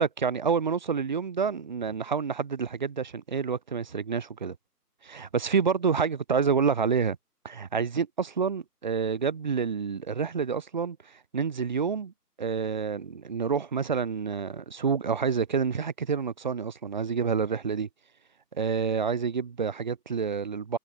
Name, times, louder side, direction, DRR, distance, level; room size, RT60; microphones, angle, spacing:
voice 1, 0.0-4.6 5.0-7.2 7.4-11.0 11.3-12.1 12.4-17.9 18.6-20.8, right 6 dB, 30° right, 2.4 m, -28 dB
figure-of-eight pair, 165°, 48 cm